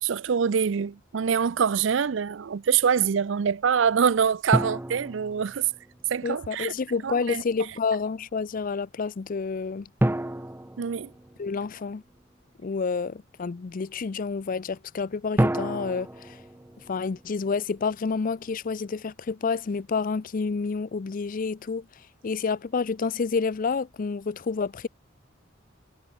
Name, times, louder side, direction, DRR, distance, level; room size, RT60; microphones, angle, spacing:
voice 1, 0.0-5.7 6.1-6.7 7.0-7.4 10.8-11.1, right 7 dB, 70° right, 0.5 m, -25 dB
sound 1, 4.5-6.1 10.0-11.9 15.4-17.6, right 1 dB, 10° right, 0.7 m, -29 dB
voice 2, 6.2-9.9 11.4-12.0 12.6-16.4 16.9-24.9, left 5 dB, 45° left, 0.5 m, -29 dB
head